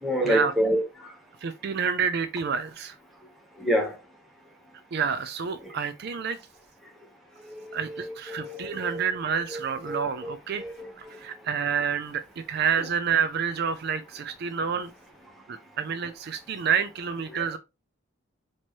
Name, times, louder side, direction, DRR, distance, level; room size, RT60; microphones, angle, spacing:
voice 1, 0.0-1.1 3.6-4.0 5.6-5.7 7.4-9.1 9.5-9.6 9.9-10.3 10.6-11.3 17.3-17.4, equal, ahead, 1.0 m, -29 dB
voice 2, 1.4-3.0 4.9-6.4 7.7-10.6 11.0-12.2 12.5-14.9 15.5-17.6, right 7 dB, 50° right, 0.4 m, -28 dB
4.4 x 2.9 x 3.0 m
head